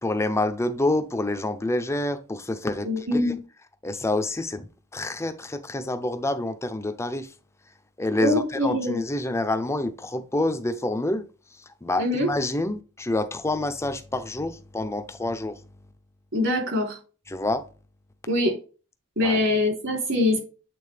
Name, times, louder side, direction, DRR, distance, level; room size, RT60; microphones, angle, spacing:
voice 1, 0.0-3.3 3.8-4.7 4.9-7.3 8.0-11.2 11.8-15.6 17.3-17.6 19.2-19.4, left 2 dB, 15° left, 0.5 m, -27 dB
voice 2, 2.8-3.4 8.2-9.0 12.0-12.3 16.3-17.0 18.3-18.5 19.2-20.4, left 1 dB, 60° right, 3.0 m, -23 dB
8.6 x 3.8 x 3.3 m
head